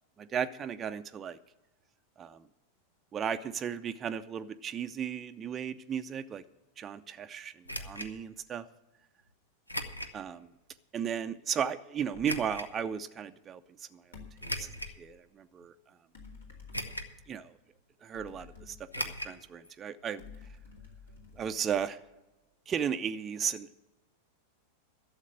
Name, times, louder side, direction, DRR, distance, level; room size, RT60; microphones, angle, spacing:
voice 1, 0.2-1.4 2.2-2.4 3.1-6.4 6.8-8.7 10.1-10.5 10.9-13.6 13.9-14.0 14.4-14.7 15.0-15.7 17.3-17.5 18.0-18.8 19.0-20.2 21.4-22.0 22.7-23.7, right 8 dB, 25° right, 9 dB, 0.5 m, -35 dB
sound 1, 7.7-8.1 9.7-10.2 10.7-10.8 12.2-12.7 14.4-15.0 15.6-15.7 16.7-17.2 17.5-17.6 18.9-19.4 19.6-19.7 20.0-20.1, equal, 85° left, 0.8 m, -37 dB
sound 2, 12.1-12.6 14.1-15.1 16.1-17.4 18.1-19.5 20.2-22.1, left 4 dB, 70° left, 2.4 m, -52 dB
12.0 x 7.2 x 8.3 m, 1.0 s
figure-of-eight pair, 90°, 0 cm